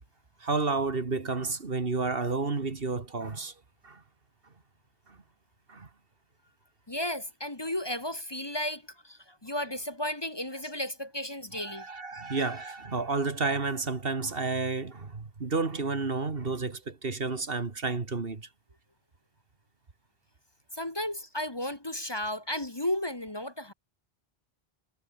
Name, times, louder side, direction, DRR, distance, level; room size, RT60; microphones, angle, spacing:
voice 1, 0.4-3.5 3.8-4.0 5.7-5.9 11.6-18.5, right 4 dB, 65° right, 2.1 m, -31 dB
voice 2, 6.9-11.9 12.1-12.2 20.7-23.7, left 1 dB, 25° left, 1.7 m, -34 dB
omnidirectional pair, 1.1 m